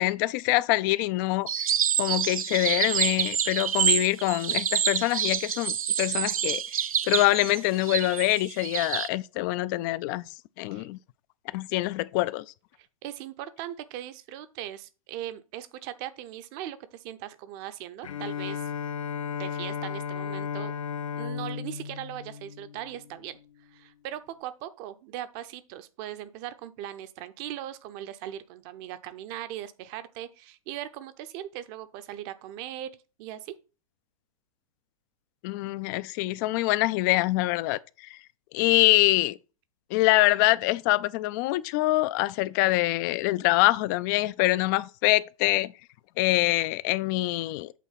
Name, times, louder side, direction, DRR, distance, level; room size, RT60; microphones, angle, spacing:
voice 1, 0.0-1.5 2.0-6.6 7.1-10.2 10.6-11.0 11.5-12.5 35.4-38.2 38.5-39.4 39.9-45.7 46.2-47.7, left 18 dB, 35° left, 0.4 m, -25 dB
sound 1, 1.5-9.1, right 8 dB, 75° right, 0.4 m, -27 dB
voice 2, 12.8-18.7 19.4-20.7 21.1-32.9 33.2-33.5, right 12 dB, 40° right, 0.7 m, -39 dB
Bowed string instrument, 18.0-23.3, left 7 dB, 65° left, 0.7 m, -35 dB
8.4 x 3.0 x 5.7 m
figure-of-eight pair, 110°, 18 cm